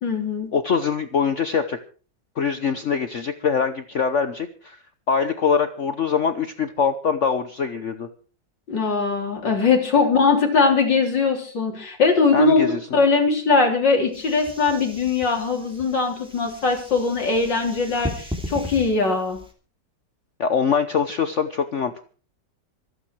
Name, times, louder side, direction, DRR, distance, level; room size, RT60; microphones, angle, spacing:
voice 1, 0.0-0.5 8.7-19.4, left 4 dB, 80° left, 2 dB, 4.2 m, -21 dB
voice 2, 0.5-1.8 2.4-4.8 5.1-8.1 12.3-12.8 20.4-22.0, left 6 dB, 50° left, 10 dB, 1.1 m, -23 dB
sound 1, 14.1-19.5, left 1 dB, 5° right, 2.7 m, -37 dB
26.0 x 8.9 x 4.7 m, 0.39 s
omnidirectional pair, 1.9 m